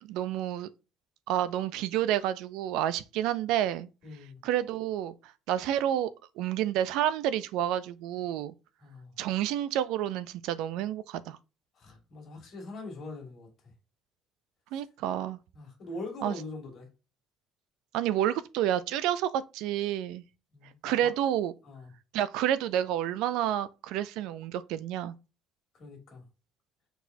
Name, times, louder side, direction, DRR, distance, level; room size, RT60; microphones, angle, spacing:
voice 1, 0.0-0.7 1.3-3.9 4.4-6.1 6.4-8.5 9.2-11.4 14.7-15.4 16.2-16.3 17.9-20.2 20.8-21.5 22.1-25.1, right 11 dB, 75° right, 0.4 m, -29 dB
voice 2, 4.0-4.4 8.8-9.1 11.8-13.5 15.5-16.9 20.5-21.1 21.6-21.9 25.7-26.2, left 2 dB, 40° left, 2.2 m, -42 dB
4.5 x 4.0 x 2.7 m
cardioid pair, 160°, 0 cm